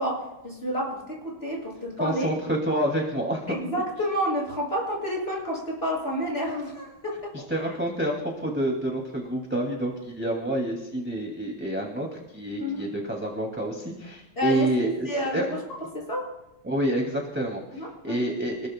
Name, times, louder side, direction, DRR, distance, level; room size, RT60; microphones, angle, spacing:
voice 1, 0.0-2.3 3.5-7.3 12.6-12.8 14.3-15.4 15.9-16.3 17.7-18.2, equal, 30° left, -3 dB, 6.8 m, -29 dB
voice 2, 2.0-3.6 7.3-15.1 15.3-15.5 16.6-18.7, right 1 dB, 5° right, -1 dB, 2.1 m, -28 dB
29.0 x 20.5 x 2.2 m, 0.90 s
omnidirectional pair, 2.2 m